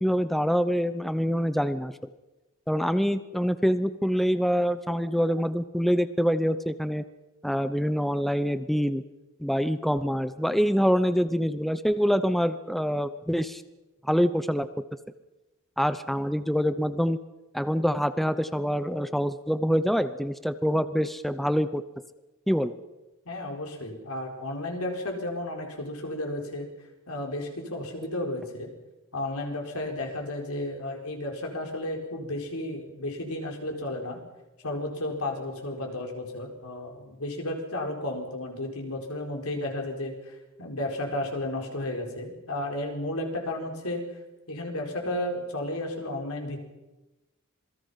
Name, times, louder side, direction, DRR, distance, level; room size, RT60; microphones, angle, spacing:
voice 1, 0.0-1.9 2.7-7.0 7.4-9.0 9.4-13.6 14.0-14.7 15.8-17.2 17.5-21.8 22.5-22.7, equal, ahead, 12 dB, 0.7 m, -25 dB
voice 2, 23.2-26.7 27.1-28.7 29.1-34.2 34.6-44.0 44.5-46.7, left 1 dB, 75° left, 2 dB, 4.6 m, -33 dB
27.0 x 20.0 x 5.7 m, 1.0 s
head